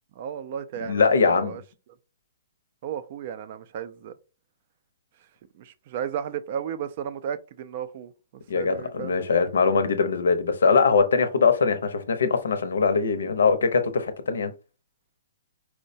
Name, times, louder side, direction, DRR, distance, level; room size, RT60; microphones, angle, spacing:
voice 1, 0.2-1.6 2.8-4.1 5.5-8.1 8.5-9.5, right 8 dB, 40° right, 0.3 m, -34 dB
voice 2, 0.9-1.6 8.5-14.5, left 5 dB, 85° left, 0.6 m, -22 dB
4.4 x 2.1 x 2.6 m
hypercardioid pair, 165°, 0 cm